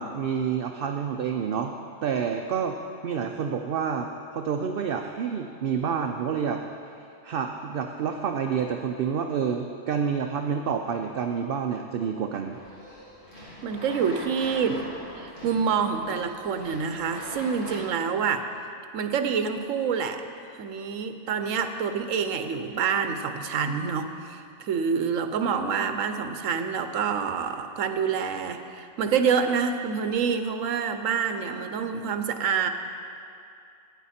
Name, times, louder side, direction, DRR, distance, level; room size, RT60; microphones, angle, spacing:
voice 1, 0.0-1.7 2.0-2.8 3.0-6.6 7.2-12.6, right 7 dB, 60° right, 4 dB, 0.6 m, -28 dB
sound 1, 12.5-17.8, equal, 40° left, 3.0 m, -41 dB
voice 2, 13.6-14.9 15.2-18.5 18.9-20.2 20.6-32.7, right 6 dB, 80° right, 8 dB, 1.1 m, -27 dB
13.5 x 9.2 x 4.2 m, 2.5 s
omnidirectional pair, 1.3 m